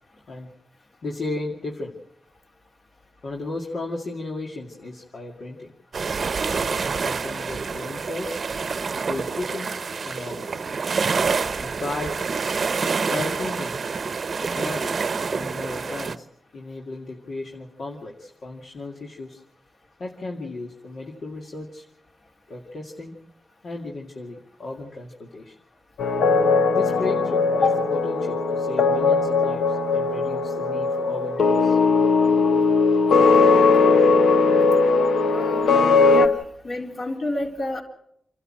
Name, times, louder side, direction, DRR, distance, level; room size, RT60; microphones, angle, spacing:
voice 1, 1.0-1.9 3.2-5.7 6.3-8.4 8.9-10.7 11.6-12.2 13.1-13.8 14.4-16.3 16.5-19.4 20.0-21.8 22.5-23.2 23.6-25.6 26.7-31.8 32.9-33.0, left 2 dB, 70° left, -1 dB, 2.4 m, -35 dB
sound 1, 5.9-16.2, right 5 dB, 55° right, 0.8 m, -27 dB
sound 2, 26.0-36.3, left 4 dB, 85° left, 0.9 m, -19 dB
voice 2, 35.3-35.7 36.1-37.8, left 2 dB, 50° left, 1 dB, 3.9 m, -28 dB
28.0 x 12.5 x 7.7 m, 0.75 s
cardioid pair, 65°, 0 cm